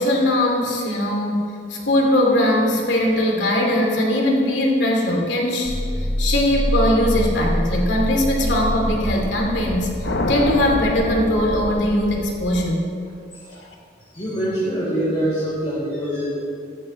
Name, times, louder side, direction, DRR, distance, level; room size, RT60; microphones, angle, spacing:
voice 1, 0.0-9.9 10.3-12.9, left 1 dB, 80° left, 0 dB, 2.5 m, -20 dB
sound 1, 5.6-12.5, equal, 85° right, 1.9 m, -26 dB
sound 2, 10.0-12.3, left 1 dB, 65° left, 1.0 m, -27 dB
voice 2, 14.1-16.3, right 1 dB, 35° left, -11 dB, 3.5 m, -24 dB
14.5 x 13.5 x 3.2 m, 2.3 s
head